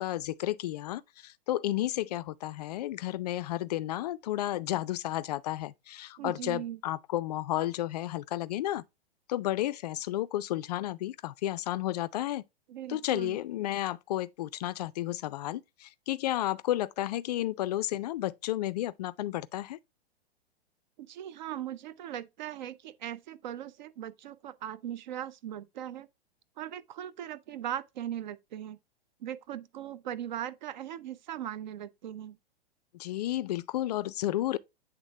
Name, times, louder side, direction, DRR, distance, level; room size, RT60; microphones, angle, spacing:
voice 1, 0.0-8.8 9.3-12.4 12.9-19.8 32.9-34.6, left 14 dB, 40° left, 0.4 m, -32 dB
voice 2, 6.2-6.8 12.7-13.4 21.0-26.1 26.6-28.8 29.2-32.4, right 11 dB, 50° right, 0.6 m, -39 dB
8.1 x 3.5 x 3.4 m
figure-of-eight pair, 105°, 31 cm